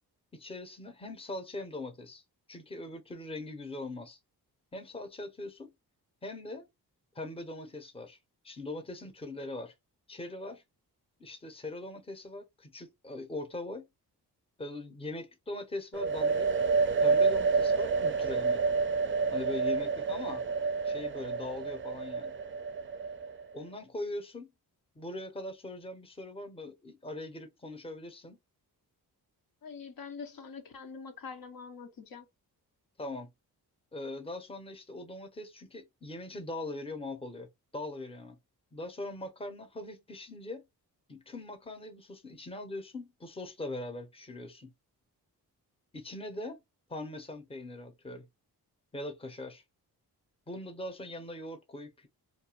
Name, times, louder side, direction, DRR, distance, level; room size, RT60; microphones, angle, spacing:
voice 1, 0.3-2.2 2.5-4.2 4.7-5.7 6.2-6.7 7.1-8.2 8.4-9.7 10.1-10.6 11.2-13.9 14.6-16.5 17.0-18.6 19.3-20.4 20.8-22.3 23.5-24.5 25.0-28.4 33.0-33.3 33.9-38.4 38.7-40.6 41.1-44.7 45.9-46.6 46.9-48.3 48.9-49.6 50.5-52.1, left 2 dB, 15° left, 0.7 m, -41 dB
sound 1, 15.9-23.6, right 4 dB, 30° right, 0.4 m, -29 dB
voice 2, 29.6-32.3, left 5 dB, 60° left, 0.8 m, -44 dB
2.5 x 2.2 x 2.9 m
cardioid pair, 60°, 40 cm